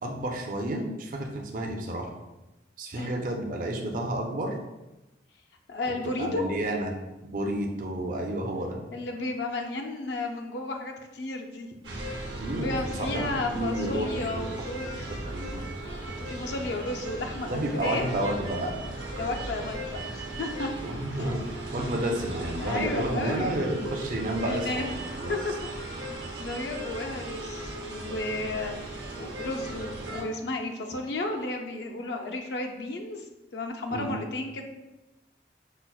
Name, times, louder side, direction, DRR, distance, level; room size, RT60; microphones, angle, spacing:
voice 1, 0.0-2.1 2.8-4.5 6.2-6.9 7.2-8.8 12.4-14.5 14.9-15.6 17.5-18.8 20.8-24.9 25.2-25.3 33.9-34.1, right 1 dB, 45° right, 2 dB, 0.4 m, -31 dB
voice 2, 5.7-6.4 8.9-11.7 12.5-15.1 16.2-18.1 19.2-21.3 22.6-23.5 24.1-24.9 25.3-25.5 25.8-33.2 33.5-34.6, left 2 dB, 70° left, 3 dB, 0.4 m, -33 dB
sound 1, 11.8-30.2, right 1 dB, 80° right, 0.7 m, -37 dB
5.5 x 2.0 x 2.3 m, 1.0 s
head